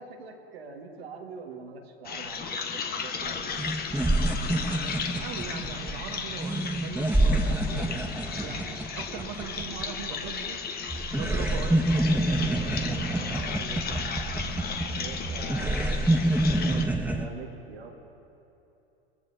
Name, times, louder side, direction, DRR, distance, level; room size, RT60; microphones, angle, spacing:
voice 1, 0.0-3.7 13.0-14.4 14.9-17.9, right 4 dB, 85° right, 1 dB, 1.8 m, -44 dB
sound 1, 2.0-16.8, left 6 dB, 30° left, 1.2 m, -35 dB
sound 2, 3.2-3.3 3.6-10.6 10.9-17.3, right 1 dB, 5° right, 0.9 m, -27 dB
voice 2, 4.7-10.6 11.1-13.3 16.4-16.5, right 7 dB, 60° right, 2 dB, 1.2 m, -40 dB
21.5 x 15.0 x 2.7 m, 2.9 s
hypercardioid pair, 90°, 30 cm